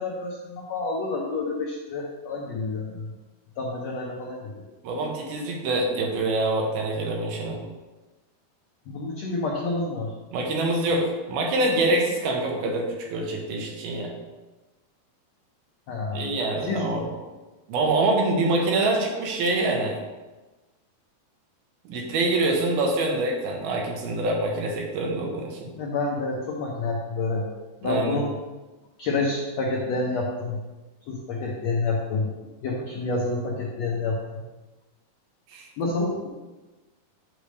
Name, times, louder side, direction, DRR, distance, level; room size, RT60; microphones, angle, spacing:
voice 1, 0.0-3.1 3.6-4.6 8.9-10.1 15.9-16.3 16.6-16.9 25.8-27.5 27.8-28.3 29.0-30.6 31.1-32.3 32.6-34.2 35.8-36.3, left 3 dB, 85° left, -2 dB, 1.4 m, -28 dB
voice 2, 4.8-7.6 10.3-14.1 16.1-17.1 17.7-20.0 21.9-25.7 27.8-28.2 35.5-35.7, right 2 dB, 80° right, 0 dB, 3.1 m, -25 dB
8.6 x 3.4 x 6.4 m, 1.2 s
omnidirectional pair, 4.3 m